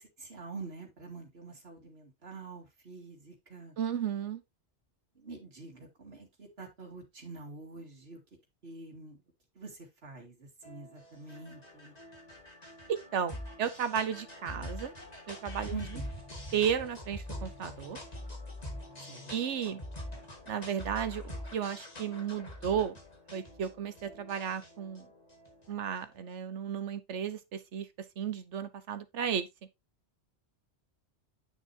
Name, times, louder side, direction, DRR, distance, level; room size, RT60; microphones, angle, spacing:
voice 1, 0.0-3.8 5.2-8.2 8.6-9.2 9.5-11.9 15.7-16.1 19.1-19.7, right 3 dB, 65° right, 2.5 m, -46 dB
voice 2, 3.8-4.4 12.9-14.9 15.3-15.7 16.5-18.0 19.3-19.8 20.5-22.9 23.3-25.1 25.7-27.9 28.2-29.5, right 8 dB, 90° right, 1.2 m, -34 dB
sound 1, 10.6-26.2, left 1 dB, 35° left, 2.1 m, -45 dB
9.6 x 6.3 x 2.7 m
omnidirectional pair, 1.2 m